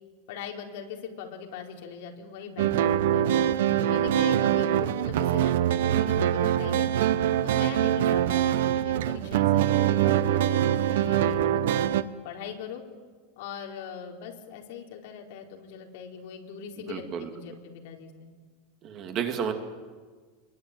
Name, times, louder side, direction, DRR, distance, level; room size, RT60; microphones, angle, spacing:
voice 1, 0.3-3.4 3.8-6.9 7.4-11.9 12.2-12.8 13.4-18.3, left 7 dB, 60° left, 1 dB, 4.5 m, -40 dB
sound 1, 2.6-12.0, right 11 dB, 80° right, 1.1 m, -24 dB
voice 2, 16.9-17.3 18.8-19.5, right 8 dB, 30° right, 6 dB, 2.7 m, -31 dB
27.5 x 23.0 x 9.3 m, 1.5 s
supercardioid pair, 175°, 0 cm